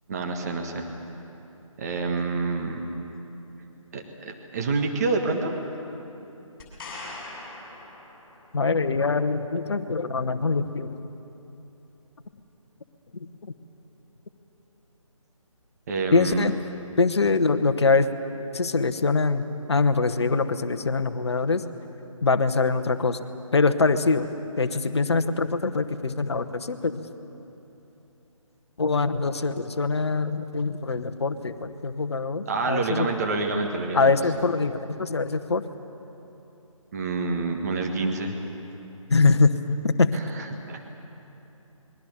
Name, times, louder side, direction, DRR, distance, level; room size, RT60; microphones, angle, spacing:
voice 1, 0.1-0.9 1.8-2.8 3.9-5.5 15.9-16.5 32.5-34.1 36.9-38.4 40.1-40.8, right 3 dB, 30° right, 3 dB, 1.6 m, -28 dB
sound 1, 6.6-8.6 12.2-12.3, left 2 dB, 35° left, 6.9 m, -41 dB
voice 2, 8.5-11.0 16.1-16.5 17.0-18.1 18.5-19.4 19.7-21.6 22.2-23.2 23.5-24.3 24.6-27.0 28.8-33.1 33.9-35.6 39.1-39.5 39.8-40.1, left 4 dB, 50° left, 9 dB, 1.1 m, -23 dB
27.0 x 21.5 x 6.8 m, 3.0 s
figure-of-eight pair, 150°, 18 cm